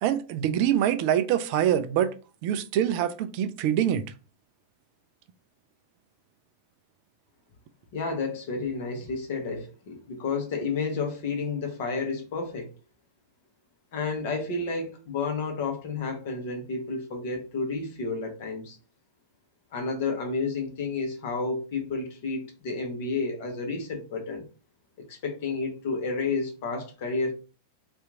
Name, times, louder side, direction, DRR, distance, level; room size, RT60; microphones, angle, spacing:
voice 1, 0.0-2.1 2.4-4.0, right 10 dB, 45° right, 0.3 m, -24 dB
voice 2, 7.9-12.7 13.9-18.8 19.7-24.5 25.1-27.3, left 4 dB, 50° left, 1.0 m, -31 dB
2.8 x 2.4 x 3.6 m
figure-of-eight pair, 90°, 0 cm